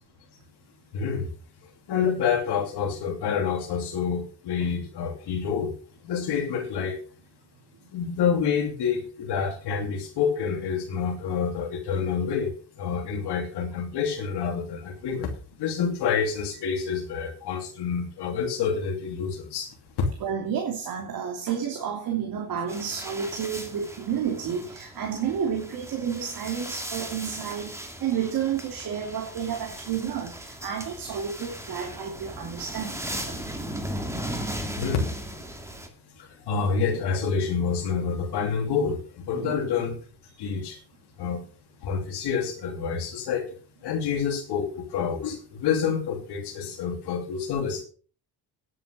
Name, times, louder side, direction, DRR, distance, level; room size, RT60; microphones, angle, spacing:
voice 1, 0.9-1.3 1.6-5.7 6.0-7.0 7.9-15.3 15.6-19.7 20.0-20.1 34.8-35.1 36.2-40.0 40.4-40.8 41.2-41.5 41.8-43.5 43.8-47.8, left 6 dB, 75° left, 1 dB, 2.9 m, -28 dB
voice 2, 20.2-33.8 39.3-39.6 40.4-40.5, right 8 dB, 60° right, 3 dB, 2.9 m, -31 dB
sound 1, 22.7-35.9, equal, 5° right, 2.4 m, -37 dB
10.5 x 9.5 x 6.5 m, 0.40 s
cardioid pair, 135°, 40 cm